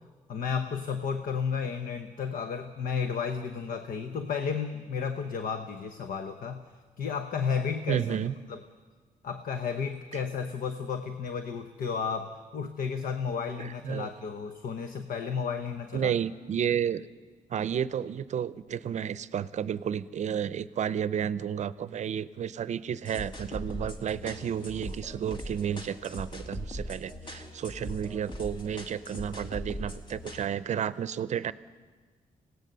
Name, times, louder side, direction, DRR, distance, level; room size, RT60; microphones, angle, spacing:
voice 1, 0.3-6.6 7.0-8.1 8.5-8.6 9.2-16.2, left 6 dB, 75° left, 8 dB, 1.0 m, -32 dB
voice 2, 7.9-8.3 13.6-14.1 15.9-17.0 17.5-31.5, right 8 dB, 55° right, 17 dB, 0.6 m, -31 dB
sound 1, 23.1-30.5, equal, 35° left, 1.9 m, -40 dB
25.5 x 17.5 x 6.8 m, 1.4 s
cardioid pair, 130°, 14 cm